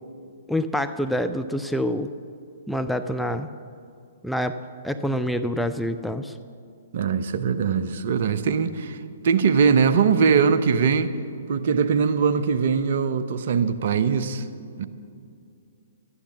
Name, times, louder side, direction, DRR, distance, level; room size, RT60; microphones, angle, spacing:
voice 1, 0.5-2.1 2.7-3.5 4.2-4.6 4.8-6.3, equal, ahead, 8 dB, 0.4 m, -26 dB
voice 2, 6.9-11.1 11.5-14.5 14.8-14.9, right 6 dB, 55° right, 10 dB, 0.8 m, -21 dB
13.0 x 9.9 x 7.2 m, 2.4 s
figure-of-eight pair, 120°, 0 cm